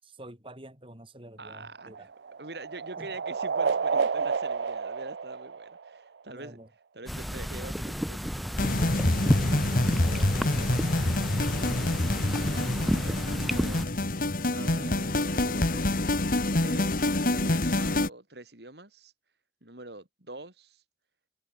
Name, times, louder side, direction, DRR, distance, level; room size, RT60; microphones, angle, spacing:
voice 1, 0.0-2.1 3.0-3.1 6.3-6.7 7.0-7.3 9.3-11.8, right 1 dB, 30° right, 6.2 m, -47 dB
voice 2, 1.4-2.1 2.4-6.6 6.9-8.8 12.3-13.8 14.5-15.9 16.6-19.1 19.6-20.8, right 2 dB, 65° right, 4.6 m, -45 dB
sound 1, 1.5-6.2, right 5 dB, 85° right, 0.6 m, -30 dB
sound 2, 7.1-13.8, equal, ahead, 1.4 m, -31 dB
sound 3, 8.6-18.1, left 1 dB, 55° left, 1.8 m, -26 dB
head